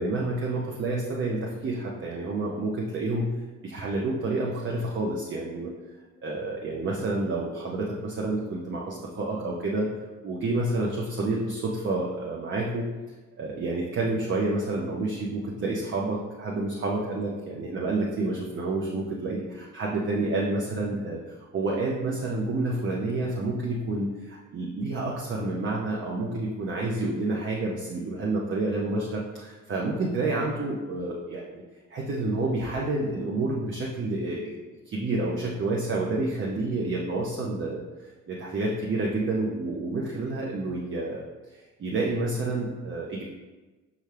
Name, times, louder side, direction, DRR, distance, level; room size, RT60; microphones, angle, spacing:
voice 1, 0.0-3.3 3.6-5.7 6.2-9.9 10.2-12.9 13.4-31.6 31.9-34.6 34.9-37.8 38.3-41.2 41.5-43.2, right 2 dB, 30° right, -2 dB, 0.6 m, -29 dB
5.3 x 2.4 x 3.2 m, 1.2 s
hypercardioid pair, 55°, 41 cm